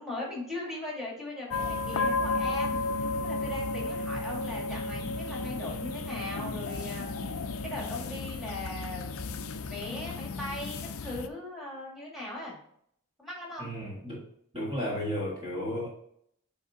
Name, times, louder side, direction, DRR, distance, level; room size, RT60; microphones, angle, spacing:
voice 1, 0.0-7.1 7.6-9.1 9.4-12.6 13.2-13.7, left 1 dB, ahead, -4 dB, 2.1 m, -39 dB
sound 1, 1.5-11.3, left 3 dB, 70° left, 0.5 m, -33 dB
voice 2, 13.6-14.3 14.5-15.9, equal, 25° right, -4 dB, 1.6 m, -33 dB
8.2 x 3.7 x 3.7 m, 0.68 s
head